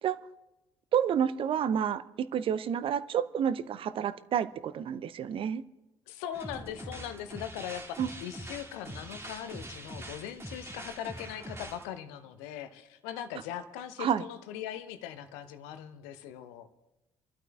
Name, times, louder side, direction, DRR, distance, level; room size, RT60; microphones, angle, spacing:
voice 1, 0.9-5.6 8.0-8.1 14.0-14.2, right 8 dB, 45° right, 16 dB, 0.5 m, -29 dB
voice 2, 6.1-16.7, left 10 dB, 65° left, 11 dB, 0.8 m, -40 dB
sound 1, 6.3-11.9, right 1 dB, 20° right, 2.2 m, -43 dB
29.0 x 12.5 x 2.4 m, 0.97 s
figure-of-eight pair, 50°, 13 cm